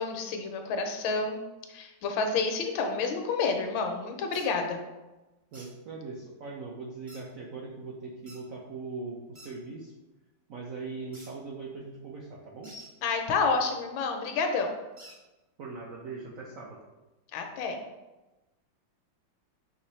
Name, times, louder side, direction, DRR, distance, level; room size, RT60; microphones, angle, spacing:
voice 1, 0.0-1.4 1.7-4.8 13.0-14.7 17.3-17.8, left 4 dB, 85° left, 4 dB, 1.4 m, -29 dB
sound 1, 4.3-4.5 5.5-5.7 7.1-7.2 8.3-8.4 9.3-9.5 11.1-11.3 12.6-12.9 15.0-15.2, equal, 30° right, 0.5 m, -48 dB
voice 2, 5.5-9.9 10.5-12.7 15.6-16.8, right 3 dB, 75° right, -3 dB, 0.7 m, -40 dB
5.4 x 2.9 x 3.1 m, 1.1 s
omnidirectional pair, 2.1 m